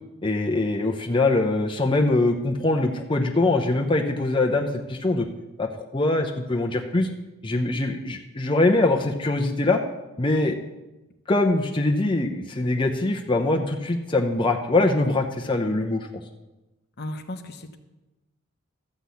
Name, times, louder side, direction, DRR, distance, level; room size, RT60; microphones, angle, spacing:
voice 1, 0.2-5.3 5.6-7.1 7.4-9.8 10.2-10.5 11.3-16.2, left 2 dB, 25° left, 1 dB, 0.7 m, -23 dB
voice 2, 17.0-17.8, left 1 dB, 50° left, 7 dB, 0.9 m, -35 dB
13.0 x 6.0 x 8.3 m, 1.0 s
head